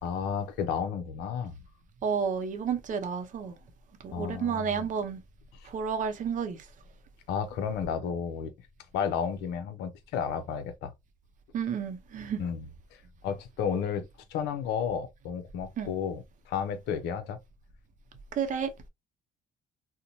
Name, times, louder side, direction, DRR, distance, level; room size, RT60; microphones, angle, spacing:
voice 1, 0.0-1.6 4.1-4.9 7.3-8.5 8.9-10.9 12.4-12.7 13.2-17.4, left 7 dB, 85° left, 0.5 m, -32 dB
voice 2, 2.0-3.5 4.0-5.2 5.6-6.7 11.5-12.4 15.8-15.9 18.3-18.7, right 6 dB, 50° right, 0.6 m, -31 dB
2.6 x 2.1 x 2.8 m
cardioid pair, 110°, 17 cm